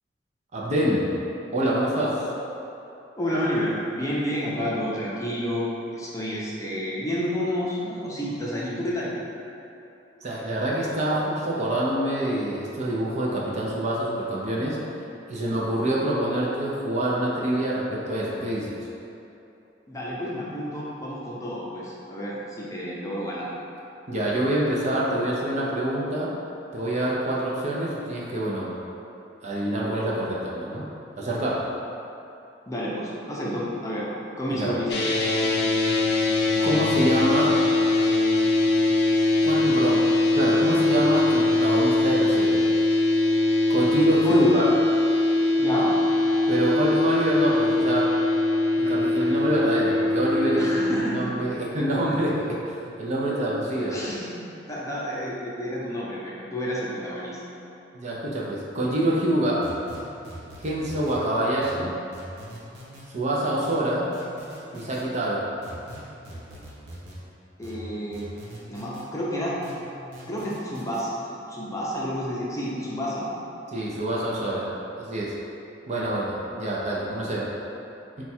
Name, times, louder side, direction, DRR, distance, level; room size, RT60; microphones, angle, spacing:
voice 1, 0.5-1.2 1.5-2.3 10.2-14.8 15.3-18.8 24.1-26.3 26.7-28.7 29.4-30.8 31.2-31.7 34.5-34.7 36.6-37.6 39.4-40.1 40.4-42.7 43.7-44.7 45.7-45.9 46.5-48.1 48.8-54.0 57.9-59.7 60.6-61.9 63.1-64.1 64.7-65.5 73.7-74.7 75.0-75.3 75.9-77.5, right 1 dB, 40° right, -5 dB, 0.6 m, -26 dB
voice 2, 3.2-9.1 19.9-23.5 32.7-34.1 34.4-34.9 44.2-44.6 45.6-45.9 50.6-51.3 52.1-52.2 53.9-54.3 54.7-57.4 67.6-68.3 68.7-69.6 70.3-71.1 71.5-73.3, equal, 15° left, -6 dB, 0.6 m, -29 dB
sound 1, 34.9-51.0, left 2 dB, 65° left, 0.6 m, -22 dB
sound 2, 59.6-61.2 61.6-63.1 63.6-65.0 65.6-67.2 67.6-69.1 69.6-71.0, right 1 dB, 60° right, 0.8 m, -42 dB
4.4 x 2.3 x 4.2 m, 2.9 s
head